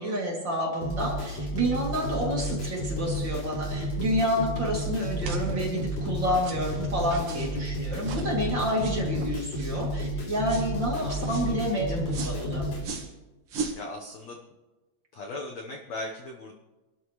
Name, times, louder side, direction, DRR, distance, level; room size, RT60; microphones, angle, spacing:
voice 1, 0.0-12.7, equal, 30° right, -3 dB, 2.8 m, -29 dB
sound 1, 0.8-12.8, equal, 45° left, 4.4 m, -31 dB
sound 2, 3.7-9.9, right 5 dB, 65° right, 3.0 m, -45 dB
sound 3, 6.6-6.8 7.3-7.6 8.0-8.2 8.8-9.0 9.5-9.8 10.5-10.7 11.2-11.5 12.1-12.4 12.8-13.1 13.5-13.8, right 4 dB, 85° right, 1.2 m, -37 dB
voice 2, 11.0-11.5 13.7-14.4 15.1-16.5, left 2 dB, 80° left, 0 dB, 1.5 m, -39 dB
26.0 x 12.5 x 3.2 m, 1.1 s
omnidirectional pair, 5.1 m